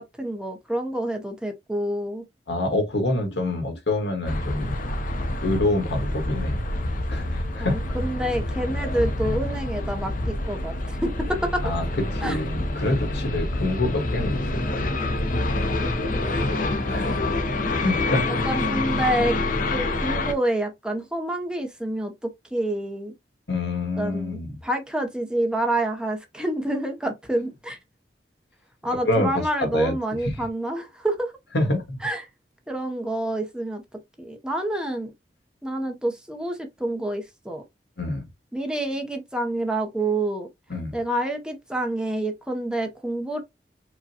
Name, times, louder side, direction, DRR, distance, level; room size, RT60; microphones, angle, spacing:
voice 1, 0.0-2.2 7.6-11.6 12.2-12.4 15.8-15.9 18.4-19.4 19.7-23.1 24.0-27.8 28.8-31.3 32.0-32.3 32.7-33.8 34.2-35.1 35.6-37.6 38.5-40.5 40.9-43.4, right 1 dB, 5° right, 0.7 m, -28 dB
voice 2, 2.5-4.7 5.4-6.6 7.1-7.8 11.6-11.9 12.1-14.9 16.9-17.1 17.8-18.3 23.5-24.6 29.0-29.9 30.2-30.4 31.5-32.0 38.0-38.2 40.7-40.9, left 2 dB, 85° left, 1.4 m, -26 dB
sound 1, 4.3-20.3, left 2 dB, 50° left, 0.6 m, -27 dB
4.8 x 2.2 x 2.8 m
head